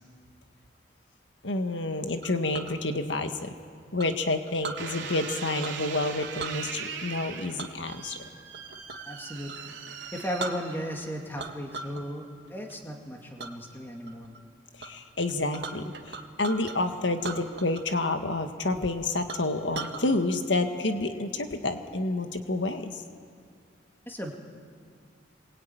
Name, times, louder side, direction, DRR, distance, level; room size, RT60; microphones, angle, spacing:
voice 1, 1.4-3.5 3.9-8.2 14.8-23.0, left 2 dB, 80° left, 6 dB, 1.7 m, -29 dB
Chink clink, 2.2-2.8 4.0-4.8 5.6-5.9 6.2-6.6 7.6-9.1 9.4-9.6 10.1-10.2 10.4-11.0 11.4-12.0 12.4-12.8 13.4-13.5 14.0-14.4 14.8-14.9 15.2-16.8 17.2-18.0 18.2-18.3 18.8-18.9 19.3-20.0, right 3 dB, 65° right, 1.8 m, -39 dB
sound 1, 4.8-11.2 11.8-12.3, right 6 dB, 85° right, 2.8 m, -40 dB
voice 2, 9.1-9.7 10.1-14.3 24.1-24.3, equal, 10° left, 1 dB, 2.5 m, -36 dB
26.5 x 22.0 x 9.3 m, 2.2 s
head